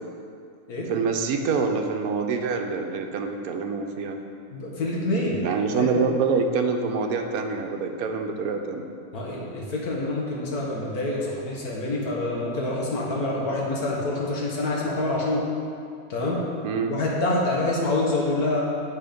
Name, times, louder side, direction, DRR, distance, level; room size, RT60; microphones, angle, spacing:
voice 1, 0.9-4.2 5.4-8.8 16.6-16.9, right 5 dB, 75° right, 5 dB, 1.1 m, -26 dB
voice 2, 4.5-6.0 9.1-15.5 16.1-16.5 16.9-18.6, left 2 dB, 75° left, -3 dB, 1.8 m, -26 dB
10.0 x 4.5 x 5.2 m, 2.4 s
omnidirectional pair, 1.6 m